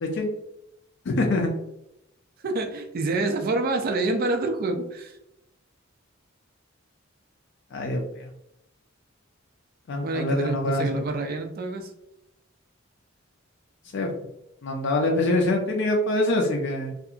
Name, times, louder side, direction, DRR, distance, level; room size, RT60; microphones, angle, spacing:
voice 1, 1.1-1.5 7.7-8.0 9.9-11.0 13.9-14.1 14.6-16.9, left 1 dB, 60° left, 1 dB, 0.4 m, -24 dB
voice 2, 2.4-5.1 10.0-11.9, right 2 dB, 45° right, 6 dB, 0.4 m, -27 dB
2.7 x 2.4 x 2.4 m, 0.85 s
head